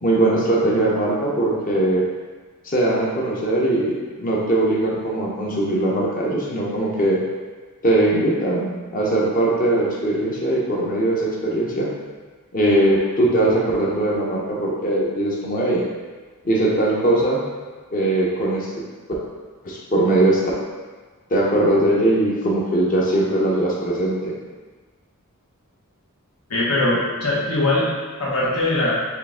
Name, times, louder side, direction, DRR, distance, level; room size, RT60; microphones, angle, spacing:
voice 1, 0.0-2.1 2.6-7.2 7.8-8.7 8.9-11.9 12.5-15.8 16.4-17.4 17.9-18.7 19.6-20.4 21.3-24.3, right 1 dB, 40° left, -4 dB, 0.6 m, -20 dB
voice 2, 26.5-27.9 28.2-28.9, left 2 dB, 85° left, -7 dB, 1.1 m, -21 dB
4.5 x 2.4 x 3.6 m, 1.4 s
head